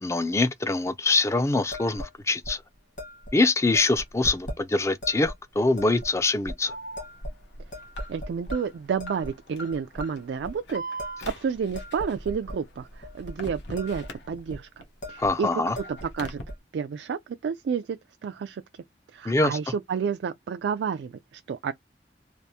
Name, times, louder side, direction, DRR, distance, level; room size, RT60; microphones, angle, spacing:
voice 1, 0.0-2.6 3.3-6.7 15.2-15.8 19.3-19.6, left 3 dB, 15° left, 0.3 m, -24 dB
sound 1, 1.7-2.1 2.4-2.6 3.0-3.3 3.7-4.6 5.0-5.4 5.8-6.1 6.5-6.6 7.0-7.4 7.7-8.6 9.0-9.3 9.7-10.1 10.4-10.6 11.0-12.6 13.0-13.3 13.6-14.1 14.4-14.6 15.0-15.4 15.6-16.6, equal, 45° left, 1.3 m, -38 dB
Alarm, 6.6-14.8 15.2-16.4, right 1 dB, 80° left, 0.9 m, -41 dB
voice 2, 8.1-10.8 11.4-14.8 15.1-15.5 15.9-16.4 16.7-18.6 19.1-21.1 21.5-21.7, right 6 dB, 75° right, 0.3 m, -30 dB
3.3 x 2.5 x 2.8 m
head